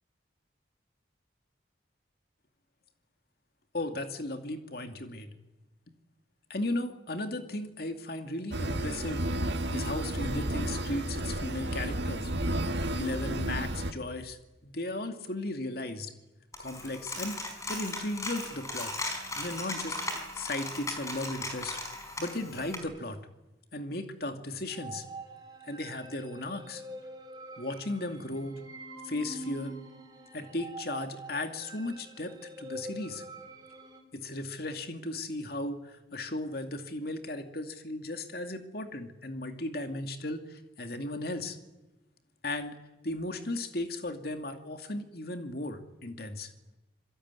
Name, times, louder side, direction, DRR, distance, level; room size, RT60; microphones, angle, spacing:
voice 1, 3.7-5.4 6.5-9.3 9.7-12.3 13.0-14.4 14.6-16.1 16.6-17.4 17.7-18.9 19.4-20.0 20.3-21.8 22.2-23.2 23.7-25.0 25.7-26.8 27.6-28.6 29.0-29.8 30.3-33.2 34.1-41.6 42.4-42.8 43.0-46.5, left 2 dB, 55° left, 6 dB, 2.5 m, -36 dB
sound 1, 8.5-13.9, right 1 dB, 70° right, 1.9 m, -32 dB
Coin (dropping), 16.5-22.8, left 2 dB, 15° left, 4.9 m, -37 dB
sound 2, 24.7-34.0, right 1 dB, 20° right, 3.9 m, -45 dB
26.5 x 22.5 x 9.8 m, 1.0 s
head